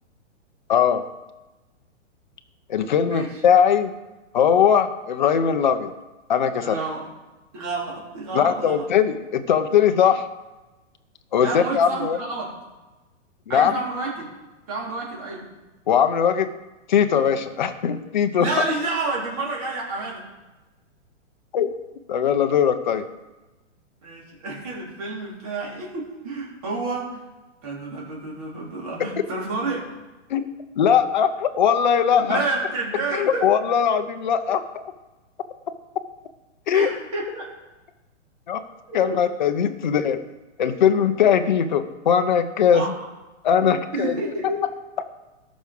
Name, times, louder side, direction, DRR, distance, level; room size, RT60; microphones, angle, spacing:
voice 1, 0.7-1.0 2.7-3.9 4.3-5.9 6.3-6.8 8.3-10.3 11.3-12.2 13.5-13.7 15.9-16.5 16.9-18.5 21.5-21.7 22.1-23.1 30.3-30.4 30.8-32.4 33.1-34.8 36.7-36.9 38.5-38.6 38.9-40.2 40.6-42.8 43.4-44.1, left 8 dB, 40° left, 7 dB, 0.9 m, -20 dB
voice 2, 6.6-7.1 7.5-8.8 11.4-12.5 13.5-14.3 14.7-15.5 18.4-20.2 24.0-27.2 27.6-30.0 32.2-33.4 36.7-37.5 39.0-39.2 42.7-42.9 43.9-44.6, right 3 dB, 30° right, -4 dB, 4.0 m, -29 dB
18.5 x 6.4 x 5.4 m, 1.1 s
hypercardioid pair, 180°, 37 cm